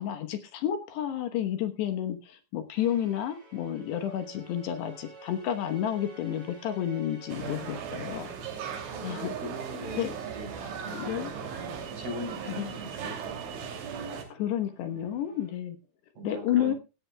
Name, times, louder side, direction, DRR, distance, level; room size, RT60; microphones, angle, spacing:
voice 1, 0.0-8.3 9.0-9.4 10.0-10.1 10.9-11.3 12.6-12.7 14.3-15.8 16.2-16.7, left 10 dB, 70° left, 8 dB, 3.1 m, -31 dB
sound 1, 2.7-15.5, right 2 dB, 15° right, 5.8 m, -52 dB
sound 2, 7.3-14.2, right 7 dB, 80° right, 5.1 m, -38 dB
voice 2, 7.4-8.1 8.9-11.6 11.9-13.7 14.9-15.2 16.2-16.8, right 1 dB, 55° right, 5 dB, 6.5 m, -41 dB
17.5 x 14.0 x 2.2 m, 0.30 s
omnidirectional pair, 5.4 m